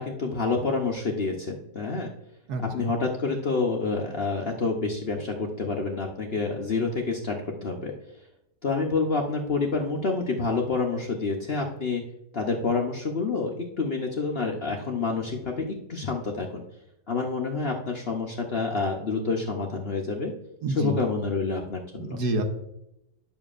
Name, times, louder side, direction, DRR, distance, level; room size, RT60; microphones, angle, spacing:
voice 1, 0.0-2.1 2.7-7.3 7.6-7.9 8.6-12.0 12.3-16.6 17.1-20.3 20.7-22.2, left 4 dB, 50° left, 1 dB, 0.8 m, -28 dB
voice 2, 2.5-2.9 20.6-21.0 22.0-22.4, right 2 dB, 70° right, 5 dB, 1.4 m, -28 dB
10.0 x 7.2 x 2.5 m, 0.83 s
omnidirectional pair, 1.9 m